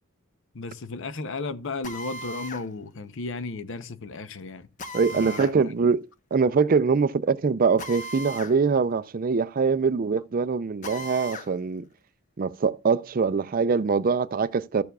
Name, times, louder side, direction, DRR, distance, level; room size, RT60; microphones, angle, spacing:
voice 1, 0.5-4.7 5.1-5.5, left 3 dB, 60° left, 0.7 m, -34 dB
Drill, 1.8-2.7 4.8-5.6 7.8-8.6 8.9-9.0 10.8-11.5, equal, 35° left, 1.0 m, -37 dB
voice 2, 4.9-6.0 6.3-11.8 12.4-14.8, right 5 dB, 40° right, 0.4 m, -23 dB
14.0 x 6.9 x 2.3 m
head